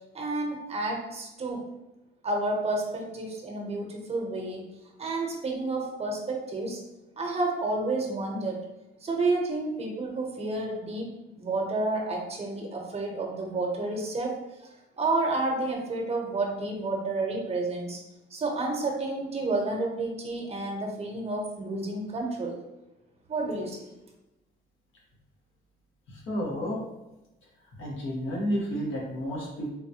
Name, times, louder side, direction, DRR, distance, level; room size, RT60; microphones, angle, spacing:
voice 1, 0.1-1.6 2.2-4.6 5.0-6.8 7.2-8.6 9.0-11.1 11.4-14.3 15.0-18.0 18.3-22.6 23.3-23.9, right 2 dB, 30° right, 1 dB, 0.8 m, -30 dB
voice 2, 26.1-26.8 27.8-29.7, equal, 80° left, -3 dB, 1.1 m, -31 dB
4.0 x 2.2 x 2.8 m, 0.96 s
cardioid pair, 90°, 20 cm